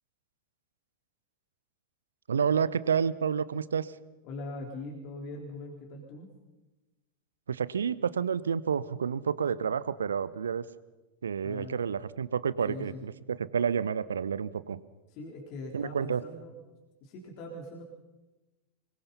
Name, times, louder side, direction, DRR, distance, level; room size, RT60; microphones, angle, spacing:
voice 1, 2.3-3.9 7.5-10.7 11.2-14.8 15.7-16.2, right 7 dB, 70° right, 18 dB, 0.8 m, -29 dB
voice 2, 4.2-6.3 11.4-11.9 12.7-13.0 15.1-16.6 17.0-17.8, left 2 dB, 40° left, 0 dB, 3.7 m, -42 dB
25.0 x 22.5 x 5.6 m, 1.1 s
figure-of-eight pair, 90°, 0 cm